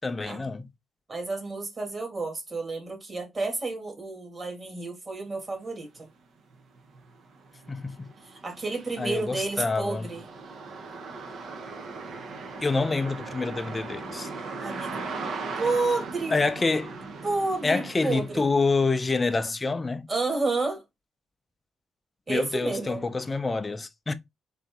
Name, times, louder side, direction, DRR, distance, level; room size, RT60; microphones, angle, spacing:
voice 1, 0.0-0.6 7.7-8.1 9.0-10.1 12.6-14.3 16.3-17.0 17.6-20.1 22.3-24.1, left 3 dB, 25° left, 0.5 m, -27 dB
voice 2, 1.1-6.1 8.2-10.2 14.6-15.0 15.6-16.4 17.2-18.4 20.1-20.8 22.3-23.1, right 3 dB, 35° right, 2.1 m, -30 dB
sound 1, 6.0-6.1 6.5-19.4, right 4 dB, 60° right, 0.8 m, -39 dB
4.0 x 2.7 x 3.7 m
cardioid pair, 90°, 0 cm